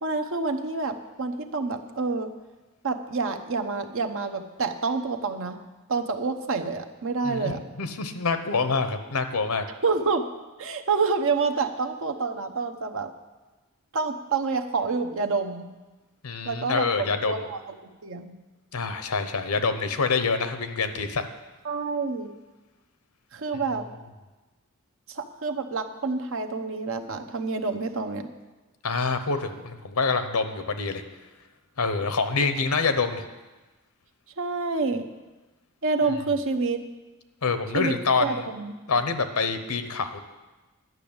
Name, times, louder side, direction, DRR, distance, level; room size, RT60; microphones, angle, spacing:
voice 1, 0.0-2.3 2.8-5.6 5.9-7.6 9.8-10.3 10.6-13.1 13.9-15.7 16.4-17.8 18.0-18.4 21.6-22.3 23.3-23.9 25.1-28.3 34.4-35.1 35.8-36.8 37.7-37.9 38.2-38.7, right 4 dB, 65° right, 6 dB, 0.9 m, -28 dB
voice 2, 7.2-9.6 16.2-17.3 18.7-21.3 28.8-31.0 31.8-33.3 37.4-38.5 38.9-40.2, left 4 dB, 80° left, 9 dB, 0.9 m, -26 dB
11.0 x 6.2 x 8.7 m, 1.2 s
head